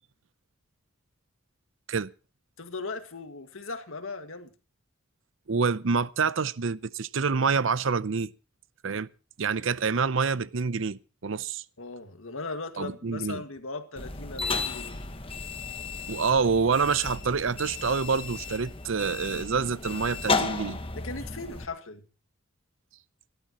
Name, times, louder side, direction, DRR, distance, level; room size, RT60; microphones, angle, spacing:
voice 1, 2.6-4.5 11.8-15.0 21.0-22.0, left 3 dB, 80° left, 1.9 m, -38 dB
voice 2, 5.5-8.3 8.8-9.1 9.4-11.6 12.8-13.4 16.1-20.8, right 5 dB, 70° right, 0.7 m, -27 dB
sound 1, 14.0-21.7, left 4 dB, 25° left, 1.2 m, -33 dB
26.0 x 12.5 x 3.0 m
head